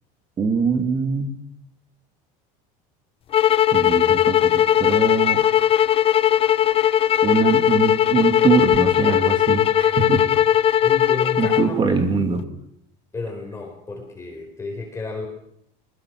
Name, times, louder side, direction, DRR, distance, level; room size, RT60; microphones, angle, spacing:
voice 1, 0.4-1.4 3.7-5.5 7.2-10.2 11.4-12.4, right 5 dB, 25° right, 6 dB, 2.7 m, -23 dB
sound 1, 3.3-11.7, left 11 dB, 30° left, 0.8 m, -18 dB
voice 2, 10.8-12.0 13.1-15.3, left 4 dB, 15° left, 1 dB, 4.2 m, -32 dB
21.5 x 21.0 x 6.2 m, 0.73 s
cardioid pair, 140°, 18 cm